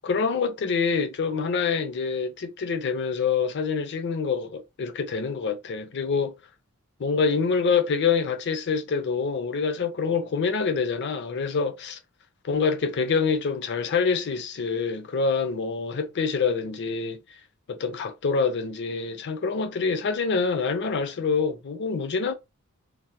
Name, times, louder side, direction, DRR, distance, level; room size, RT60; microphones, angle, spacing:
voice 1, 0.0-6.3 7.0-12.0 12.4-17.2 17.7-22.3, left 5 dB, 50° left, 0.5 m, -26 dB
3.2 x 2.0 x 2.8 m
head